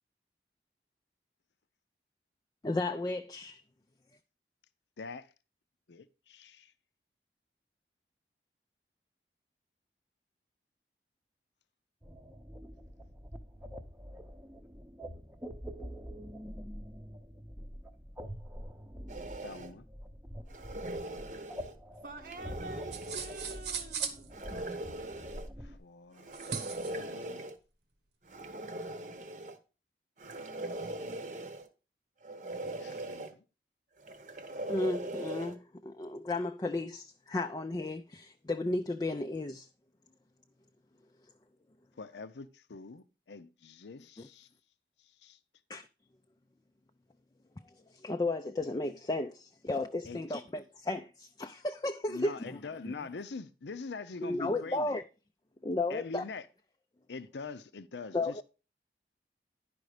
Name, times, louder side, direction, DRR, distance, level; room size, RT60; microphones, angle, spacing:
voice 1, 2.6-3.6 34.7-39.7 44.2-44.3 45.7-45.9 47.6-52.6 52.8-52.9 54.2-55.0 55.6-56.2 58.1-58.4, left 2 dB, 20° left, 0.4 m, -34 dB
voice 2, 5.0-5.3 5.9-6.7 19.4-19.9 25.6-26.3 26.8-27.5 32.8-33.4 42.0-44.5 45.0-45.4 50.1-50.2 52.1-55.0 55.9-56.5 57.1-58.4, left 4 dB, 85° left, 0.6 m, -44 dB
sound 1, 12.0-25.8, equal, 10° right, 0.7 m, -46 dB
sound 2, 19.1-19.7 20.5-21.7 22.2-23.6 24.3-25.5 26.2-27.6 28.3-29.6 30.2-31.7 32.2-33.3 34.0-35.6, right 1 dB, 45° right, 0.9 m, -40 dB
voice 3, 22.0-24.4, right 1 dB, 70° right, 1.0 m, -47 dB
sound 3, 22.9-24.2 26.3-26.9, right 6 dB, 85° right, 1.4 m, -37 dB
10.5 x 5.1 x 4.9 m
head